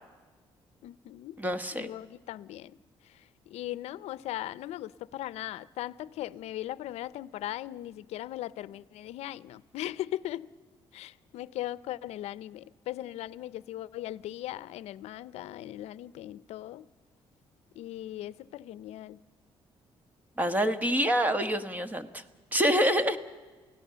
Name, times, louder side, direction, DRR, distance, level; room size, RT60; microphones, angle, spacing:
voice 1, 0.8-1.4 1.8-2.8 3.0-10.5 10.9-16.9 17.7-19.2, left 14 dB, 90° left, 0.6 m, -39 dB
voice 2, 1.4-1.9 20.4-22.2 22.5-23.2, equal, 15° right, 1.4 m, -26 dB
28.5 x 17.5 x 6.9 m
cardioid pair, 105°, 11 cm